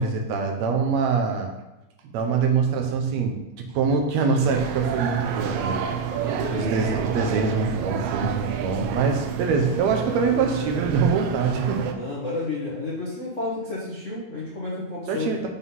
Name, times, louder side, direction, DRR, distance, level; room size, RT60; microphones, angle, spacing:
voice 1, 0.0-1.5 2.0-5.8 6.5-11.9 15.1-15.4, right 5 dB, 75° right, 3 dB, 2.0 m, -24 dB
sound 1, 4.4-11.9, right 8 dB, 90° right, 1.3 m, -29 dB
voice 2, 6.2-6.8 11.9-15.3, left 2 dB, 55° left, -6 dB, 0.8 m, -31 dB
6.3 x 3.9 x 5.4 m, 0.97 s
omnidirectional pair, 3.3 m